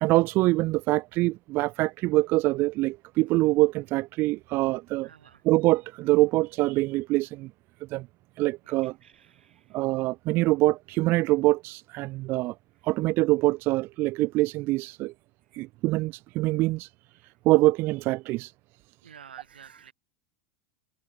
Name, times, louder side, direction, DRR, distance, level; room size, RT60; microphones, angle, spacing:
voice 1, 0.0-5.1 5.4-7.5 7.9-8.1 8.4-9.0 9.7-12.6 12.8-15.1 15.5-16.9 17.4-18.5, right 20 dB, 45° right, 0.4 m, -24 dB
voice 2, 5.0-5.4 9.0-9.6 19.0-19.9, right 7 dB, 85° right, 3.4 m, -50 dB
hypercardioid pair, 95°, 5 cm